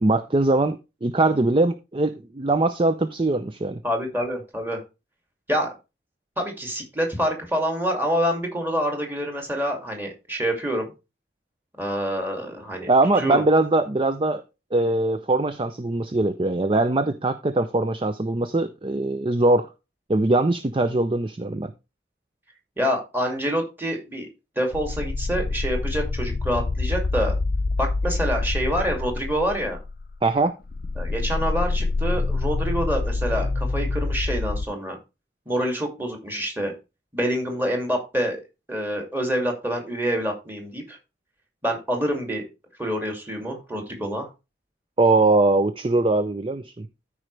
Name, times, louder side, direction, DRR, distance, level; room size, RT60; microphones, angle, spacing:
voice 1, 0.0-3.8 12.9-14.4 14.7-19.7 20.1-21.7 30.2-30.6 45.0-46.9, right 2 dB, 30° right, 10 dB, 0.5 m, -21 dB
voice 2, 3.8-4.8 5.5-5.7 6.4-10.9 11.8-12.9 13.2-13.4 22.8-24.3 24.6-27.3 27.8-29.8 31.0-35.0 35.5-36.7 37.1-38.4 38.7-41.0 41.6-42.4 42.8-44.3, equal, 10° right, 2 dB, 2.4 m, -26 dB
sound 1, 24.7-30.3 30.6-34.6, left 3 dB, 55° left, 0.5 m, -26 dB
13.5 x 5.0 x 3.2 m, 0.27 s
head